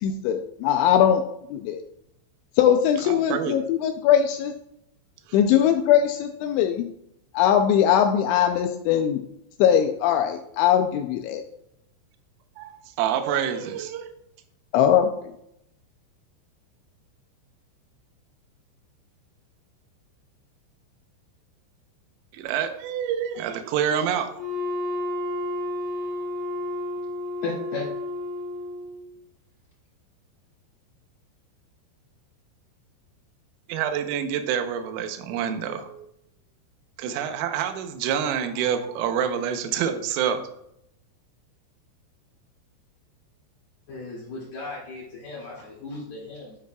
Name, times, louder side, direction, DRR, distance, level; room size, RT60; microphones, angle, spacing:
voice 1, 0.0-1.2 1.5-1.8 2.6-4.5 5.3-6.9 7.3-9.2 9.6-11.4 14.7-15.1, left 9 dB, 85° left, 6 dB, 2.7 m, -20 dB
voice 2, 3.0-3.6 5.3-5.4 12.6-14.1 22.3-24.3 33.7-36.1 37.0-40.4, right 8 dB, 85° right, 7 dB, 3.5 m, -27 dB
Wind instrument woodwind instrument, 24.3-29.1, left 2 dB, 15° left, 2.8 m, -31 dB
voice 3, 27.4-27.9 43.9-46.6, left 3 dB, 55° left, -8 dB, 3.9 m, -35 dB
12.5 x 8.2 x 2.3 m, 0.76 s
omnidirectional pair, 5.8 m